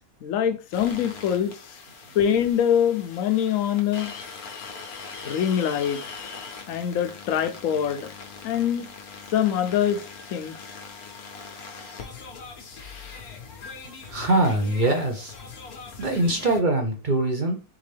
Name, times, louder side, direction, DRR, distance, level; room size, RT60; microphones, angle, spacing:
voice 1, 0.2-1.6 2.1-4.1 5.2-6.0 6.7-8.1 8.4-8.9 9.3-10.0 10.3-10.6, left 9 dB, 70° left, 1.0 m, -24 dB
sound 1, 0.7-16.6, left 5 dB, 90° left, 1.3 m, -41 dB
voice 2, 14.1-15.3 16.0-17.6, right 2 dB, 40° right, 0.8 m, -23 dB
4.2 x 3.7 x 3.3 m
omnidirectional pair, 1.5 m